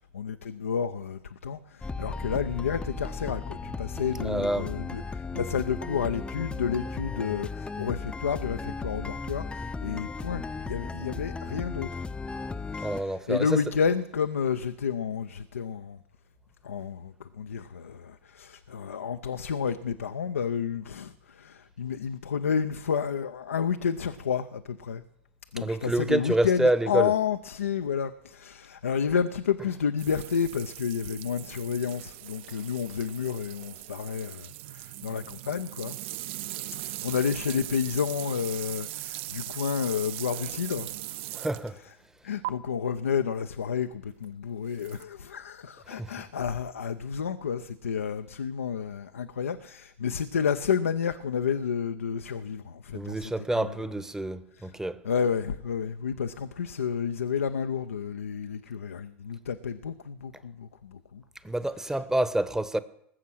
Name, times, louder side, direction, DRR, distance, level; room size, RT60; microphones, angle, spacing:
voice 1, 0.1-12.0 12.8-16.0 16.6-25.0 25.5-35.9 36.8-40.9 41.6-42.0 42.2-54.0 54.5-54.7 55.0-61.2 61.7-62.0, left 7 dB, 90° left, 0.5 m, -30 dB
sound 1, 1.8-13.0, left 4 dB, 15° left, 0.6 m, -36 dB
voice 2, 4.2-4.7 12.8-13.6 25.6-27.1 41.3-41.8 45.9-46.1 52.9-55.0 61.4-62.8, right 1 dB, 5° right, 0.9 m, -27 dB
sound 2, 30.0-41.8 42.4-42.5 44.8-45.0, right 16 dB, 65° right, 0.6 m, -39 dB
20.0 x 7.5 x 6.2 m
hypercardioid pair, 80°, 7 cm